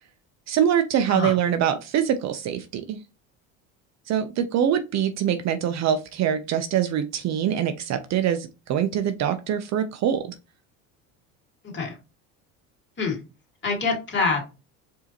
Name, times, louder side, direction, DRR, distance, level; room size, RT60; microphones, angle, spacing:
voice 1, 0.5-3.0 4.1-10.4, right 9 dB, 45° right, 9 dB, 0.5 m, -24 dB
voice 2, 11.6-12.0 13.0-13.2 13.6-14.5, left 4 dB, 30° left, 0 dB, 2.1 m, -26 dB
4.8 x 2.8 x 2.9 m, 0.30 s
supercardioid pair, 85°, 38 cm